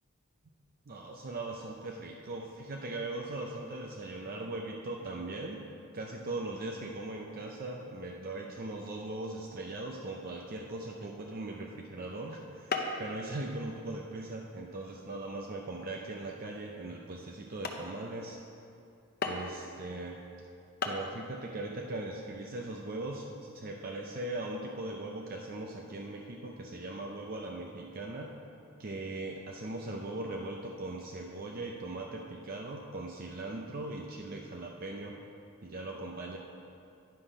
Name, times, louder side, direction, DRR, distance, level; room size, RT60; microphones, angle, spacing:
voice 1, 0.9-5.6 5.9-18.4 19.2-20.2 20.8-28.3 28.8-35.2 35.6-36.4, right 2 dB, 40° right, 0 dB, 0.5 m, -39 dB
sound 1, 11.5-11.8 12.7-13.1 13.5-13.9 14.5-14.6 15.2-15.4 16.0-16.1 16.7-16.8 17.2-17.3 17.6-17.9 19.2-19.6 20.5-20.6 20.8-21.1, left 4 dB, 45° left, 0.6 m, -35 dB
9.8 x 5.7 x 5.0 m, 2.6 s
head